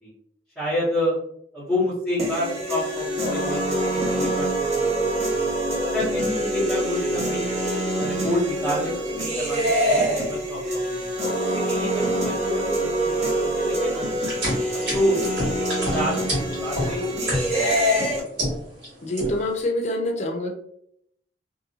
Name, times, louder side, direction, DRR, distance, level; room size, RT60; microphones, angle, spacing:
voice 1, 0.5-1.2 1.5-7.5 8.0-14.1 14.9-15.2 15.9-17.1 17.4-17.6 17.9-18.5, equal, 5° right, -15 dB, 1.2 m, -29 dB
sound 1, 2.2-18.2, right 1 dB, 35° right, 0.7 m, -25 dB
sound 2, 14.2-17.7 18.1-18.9 19.2-19.6, equal, 65° right, 1.4 m, -27 dB
voice 2, 19.0-20.5, left 1 dB, 40° left, 3 dB, 0.5 m, -26 dB
2.7 x 2.5 x 2.7 m, 0.71 s
head